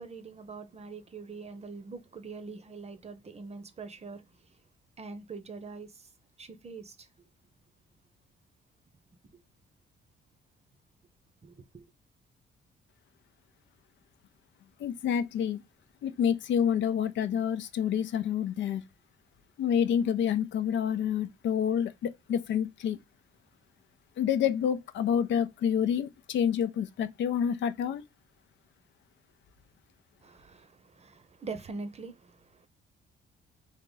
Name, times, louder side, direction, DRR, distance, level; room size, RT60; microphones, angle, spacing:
voice 1, 0.0-4.5 5.0-6.1 6.4-7.1 9.3-9.4 11.4-11.9 30.2-32.7, right 4 dB, 35° right, 0.7 m, -43 dB
voice 2, 14.8-15.6 16.0-18.8 19.6-23.0 24.2-28.0, left 8 dB, 70° left, 0.5 m, -28 dB
3.6 x 2.8 x 3.8 m
cardioid pair, 90°, 20 cm